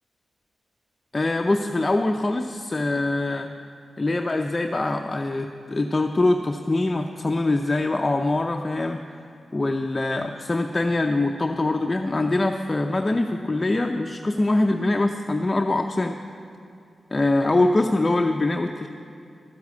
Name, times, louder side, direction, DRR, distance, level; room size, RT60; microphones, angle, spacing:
voice 1, 1.1-3.5 4.0-9.0 9.5-16.2 17.1-18.9, left 2 dB, 35° left, 3 dB, 0.6 m, -23 dB
12.5 x 8.1 x 8.3 m, 2.5 s
cardioid pair, 50°, 0 cm